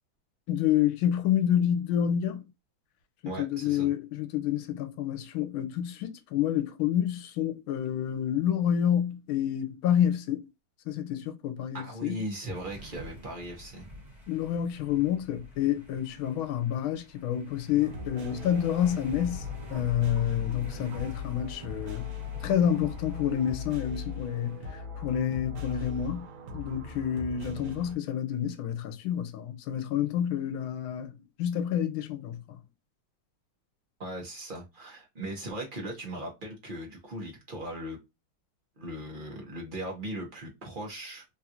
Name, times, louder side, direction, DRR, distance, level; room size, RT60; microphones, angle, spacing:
voice 1, 0.5-2.4 3.2-10.5 10.9-12.2 14.3-19.4 19.7-22.1 22.4-26.3 26.5-32.6, left 10 dB, 85° left, 1.4 m, -28 dB
voice 2, 3.2-3.9 11.7-13.9 34.0-38.0 38.8-41.2, right 1 dB, 45° right, 0.6 m, -38 dB
sound 1, 12.5-24.7, right 1 dB, 25° right, 1.3 m, -48 dB
sound 2, 17.8-27.9, left 5 dB, 75° right, 1.6 m, -39 dB
3.7 x 2.4 x 2.8 m
omnidirectional pair, 2.3 m